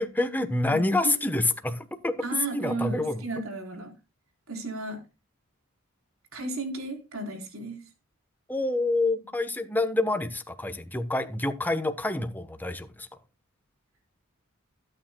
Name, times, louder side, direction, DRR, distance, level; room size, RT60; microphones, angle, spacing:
voice 1, 0.0-2.1 2.5-3.2 3.7-3.9 8.5-13.1, left 2 dB, 10° left, 1.0 m, -27 dB
voice 2, 0.7-1.1 2.2-3.9 4.5-5.0 6.3-7.8, right 3 dB, 80° right, 4.1 m, -34 dB
21.0 x 9.0 x 2.2 m
head